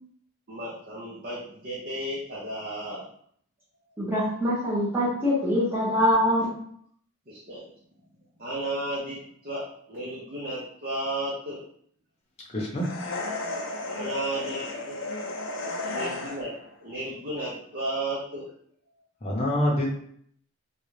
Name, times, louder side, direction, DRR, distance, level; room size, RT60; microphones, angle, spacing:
voice 1, 0.5-3.0 7.3-7.6 8.4-9.6 9.9-11.6 13.9-14.6 14.8-15.0 15.8-16.5 16.8-18.4, right 1 dB, 45° right, -7 dB, 0.8 m, -33 dB
voice 2, 4.0-6.5, equal, 10° right, -8 dB, 1.0 m, -24 dB
voice 3, 12.5-12.9 14.4-14.7 19.2-20.0, left 1 dB, 30° left, -3 dB, 0.8 m, -26 dB
sound 1, 12.8-16.7, left 2 dB, 60° left, 0.5 m, -34 dB
3.8 x 2.3 x 3.2 m, 0.64 s
head